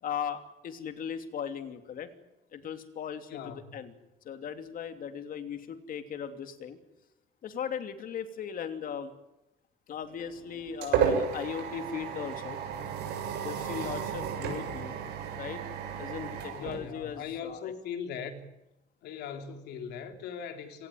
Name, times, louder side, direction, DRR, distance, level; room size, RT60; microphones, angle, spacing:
voice 1, 0.0-2.1 2.5-3.9 4.2-6.8 7.4-9.1 9.9-12.6 13.4-14.9 15.4-15.7 16.0-17.7, left 8 dB, 55° left, 2.9 m, -38 dB
voice 2, 3.3-3.7 16.5-18.4 19.0-20.9, left 7 dB, 80° left, 3.2 m, -39 dB
sound 1, 10.1-17.5, right 7 dB, 90° right, 7.1 m, -33 dB
26.0 x 18.5 x 9.3 m
cardioid pair, 110°, 17 cm